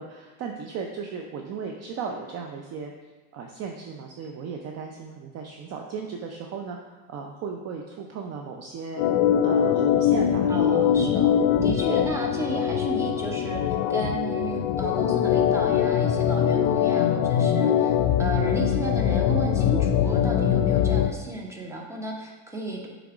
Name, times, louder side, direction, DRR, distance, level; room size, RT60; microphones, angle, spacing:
voice 1, 0.0-2.9 3.3-9.0 9.4-10.5, right 5 dB, 35° right, 2 dB, 0.5 m, -36 dB
Organ, 9.0-21.1, left 9 dB, 65° left, 0.6 m, -22 dB
voice 2, 10.5-11.4 11.6-22.9, right 1 dB, 5° right, -1 dB, 0.9 m, -33 dB
7.2 x 3.5 x 4.9 m, 1.3 s
supercardioid pair, 120°, 46 cm